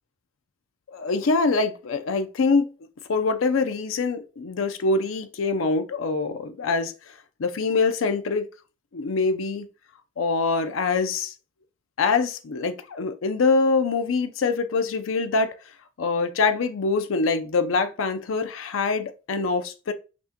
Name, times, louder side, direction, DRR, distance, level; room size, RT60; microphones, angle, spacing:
voice 1, 0.9-2.7 3.1-6.9 7.4-8.5 8.9-9.7 10.2-11.3 12.0-15.5 16.0-19.9, left 4 dB, 80° left, 0.5 m, -24 dB
5.9 x 2.2 x 2.8 m
head